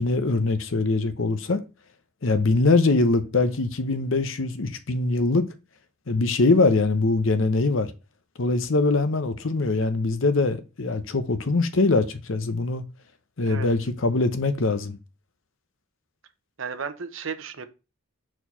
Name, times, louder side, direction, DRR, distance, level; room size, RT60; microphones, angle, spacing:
voice 1, 0.0-1.6 2.2-5.5 6.1-7.9 8.4-12.8 13.4-15.0, left 3 dB, 70° left, 0.8 m, -22 dB
voice 2, 16.6-17.6, right 6 dB, 70° right, 0.8 m, -33 dB
4.6 x 4.5 x 5.5 m
head